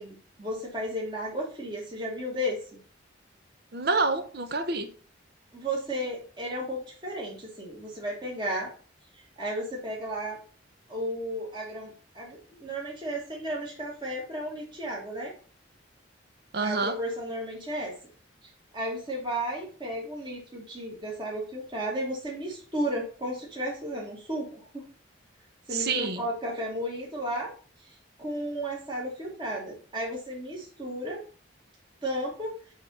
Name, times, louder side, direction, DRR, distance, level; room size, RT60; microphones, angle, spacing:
voice 1, 0.0-2.6 5.5-8.7 9.4-10.4 10.9-15.3 16.6-17.9 18.7-24.8 25.7-27.5 27.8-31.2 32.0-32.5, equal, 25° right, 1.7 m, -33 dB
voice 2, 3.7-4.9 16.5-16.9 25.7-26.2, right 3 dB, 55° right, 0.8 m, -27 dB
6.5 x 3.7 x 6.0 m
head